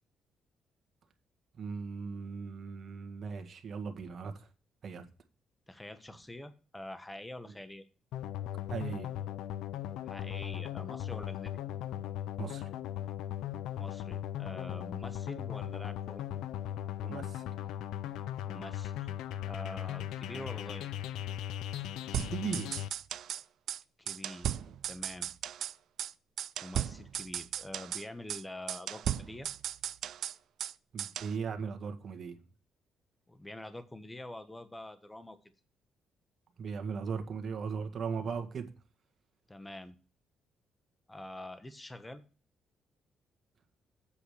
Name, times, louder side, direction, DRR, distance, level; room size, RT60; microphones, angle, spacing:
voice 1, 1.6-4.5 4.8-5.0 8.7-9.1 12.4-12.7 17.0-17.4 22.3-22.7 30.9-32.4 36.6-38.7, right 5 dB, 50° right, 6 dB, 1.8 m, -38 dB
voice 2, 5.7-7.8 10.0-11.6 13.8-16.2 18.5-19.1 19.4-20.9 24.0-25.3 26.6-29.5 33.3-35.4 39.5-39.9 41.1-42.2, left 1 dB, 15° left, 11 dB, 1.3 m, -45 dB
sound 1, 8.1-22.9, left 11 dB, 90° left, 0.6 m, -38 dB
sound 2, 22.1-23.4 23.7-23.8 24.1-25.7 26.0-26.1 26.4-28.0 28.3-28.4 28.7-30.7 31.0-31.3, right 10 dB, 70° right, 0.4 m, -36 dB
8.6 x 5.1 x 6.4 m, 0.35 s
cardioid pair, 90°, 0 cm